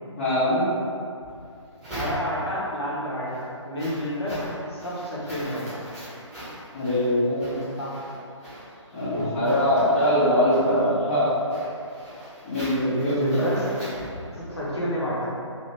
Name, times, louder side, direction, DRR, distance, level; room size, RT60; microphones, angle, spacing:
voice 1, 0.1-0.6 6.7-7.6 8.9-11.3 12.4-13.4, equal, 20° left, -12 dB, 0.7 m, -22 dB
sound 1, 1.2-2.6 3.1-14.7, equal, 5° right, 1.1 m, -41 dB
voice 2, 1.9-4.4 4.7-5.8 7.7-7.9 9.1-9.3 12.9-13.6 14.5-15.3, equal, 55° left, -7 dB, 1.0 m, -29 dB
2.8 x 2.7 x 3.3 m, 2.6 s
figure-of-eight pair, 145°, 16 cm